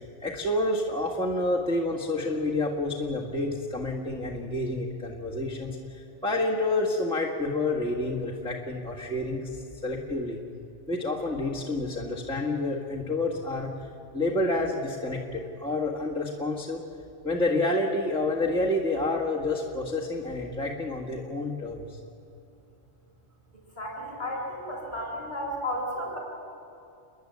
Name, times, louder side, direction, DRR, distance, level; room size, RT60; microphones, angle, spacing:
voice 1, 0.2-10.4 10.9-13.7 14.1-16.8 17.2-22.0, left 2 dB, 5° left, -4 dB, 1.6 m, -29 dB
voice 2, 23.8-26.2, left 1 dB, 45° left, -2 dB, 7.2 m, -33 dB
29.5 x 11.0 x 9.5 m, 2.6 s
omnidirectional pair, 1.2 m